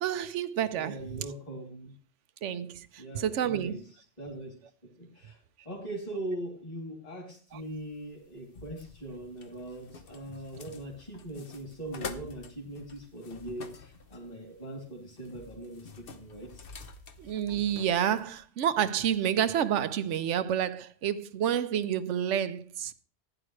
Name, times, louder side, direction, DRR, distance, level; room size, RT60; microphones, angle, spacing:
voice 1, 0.0-1.2 2.4-3.8 7.5-7.6 17.2-22.9, right 9 dB, 80° right, 1.1 m, -29 dB
voice 2, 0.7-1.9 3.0-3.8 4.2-4.5 4.8-5.4 5.6-16.6, right 1 dB, 35° left, 3.0 m, -41 dB
sound 1, 7.5-18.4, left 4 dB, 55° left, 1.1 m, -48 dB
15.5 x 9.9 x 3.2 m
omnidirectional pair, 1.2 m